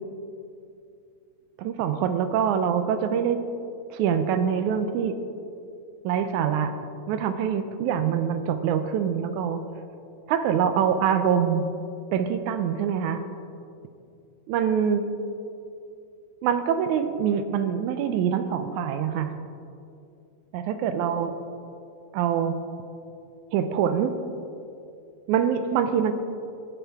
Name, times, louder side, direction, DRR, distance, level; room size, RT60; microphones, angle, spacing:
voice 1, 1.6-3.4 3.9-5.2 6.0-6.8 7.1-9.6 10.3-11.7 12.1-13.3 14.5-15.1 16.4-19.3 20.5-21.4 22.1-22.6 23.5-24.2 25.3-26.1, right 8 dB, 80° right, 10 dB, 1.9 m, -24 dB
17.5 x 7.2 x 3.5 m, 2.5 s
omnidirectional pair, 3.7 m